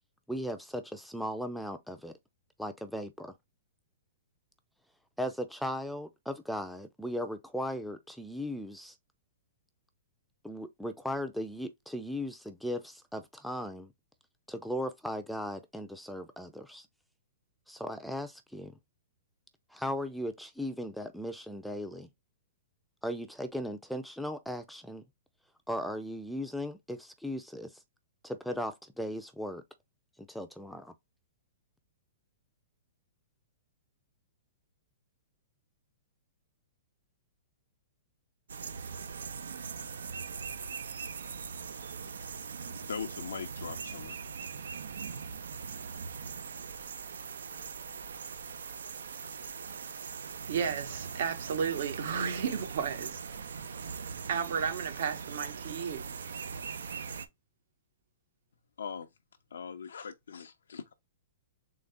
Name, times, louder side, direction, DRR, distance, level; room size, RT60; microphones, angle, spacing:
voice 1, 0.3-2.1 2.6-3.3 5.2-9.0 10.4-13.9 14.5-16.9 17.7-18.7 19.7-22.1 23.0-25.0 25.7-27.8 28.2-29.6 30.2-30.9, equal, ahead, 0.5 m, -37 dB
sound 1, 38.5-57.3, right 6 dB, 85° right, 0.7 m, -41 dB
voice 2, 42.8-44.2 58.8-59.1 59.5-60.9, left 6 dB, 85° left, 0.6 m, -40 dB
voice 3, 50.5-53.2 54.3-56.1, right 7 dB, 65° right, 1.3 m, -33 dB
3.9 x 3.2 x 3.5 m
hypercardioid pair, 135°, 0 cm